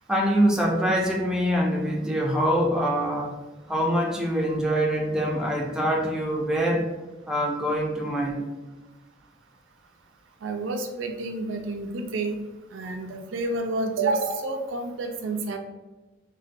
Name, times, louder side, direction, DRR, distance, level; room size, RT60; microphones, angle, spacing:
voice 1, 0.1-3.4 3.7-6.9 7.3-8.4, equal, 5° right, -2 dB, 0.4 m, -24 dB
voice 2, 10.4-12.4 12.7-15.6, right 3 dB, 90° right, 4 dB, 0.4 m, -29 dB
4.0 x 2.1 x 2.5 m, 1.2 s
head